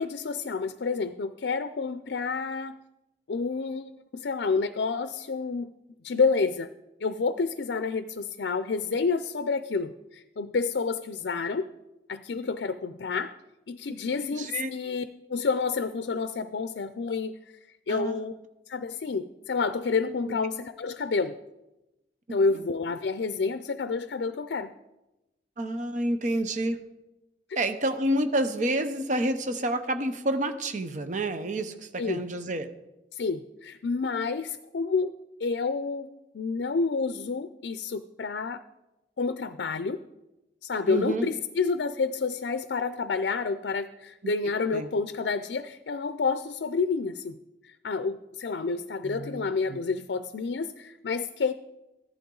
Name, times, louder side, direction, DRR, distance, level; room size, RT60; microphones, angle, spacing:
voice 1, 0.0-2.8 3.3-5.7 6.0-6.7 7.0-11.7 12.1-13.3 13.7-15.0 15.3-17.6 17.9-18.3 18.7-21.4 22.3-24.7 32.0-32.2 33.1-35.1 35.4-36.1 36.3-38.6 39.2-40.0 40.6-47.4 47.6-51.5, left 4 dB, 70° left, 11 dB, 0.5 m, -29 dB
voice 2, 14.2-14.7 17.9-18.2 20.3-20.4 25.6-26.9 27.6-32.7 40.9-41.3 44.2-44.3 44.7-44.9 49.0-49.8, right 1 dB, 45° right, 8 dB, 0.7 m, -29 dB
14.5 x 11.5 x 3.9 m, 0.97 s
head